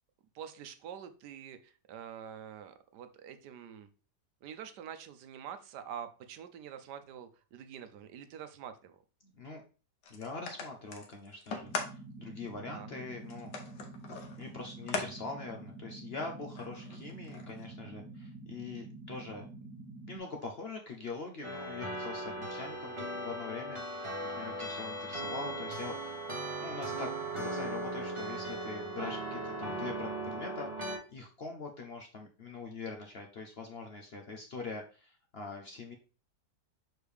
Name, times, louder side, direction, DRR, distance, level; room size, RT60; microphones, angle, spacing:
voice 1, 0.3-3.9 4.4-8.9 12.7-12.9, right 8 dB, 75° right, 9 dB, 1.3 m, -46 dB
sound 1, 10.0-12.0 12.5-12.6 13.3-15.1 15.4-15.6 16.5-17.6, left 4 dB, 85° left, 1.7 m, -40 dB
voice 2, 10.1-13.5 14.4-19.5 20.1-26.2 26.6-35.9, left 3 dB, 50° left, 2 dB, 0.7 m, -43 dB
sound 2, 11.6-20.2, right 2 dB, 45° right, 1.8 m, -48 dB
sound 3, 21.4-31.0, right 1 dB, 20° right, 1.2 m, -38 dB
6.5 x 4.4 x 3.4 m, 0.35 s
omnidirectional pair, 1.8 m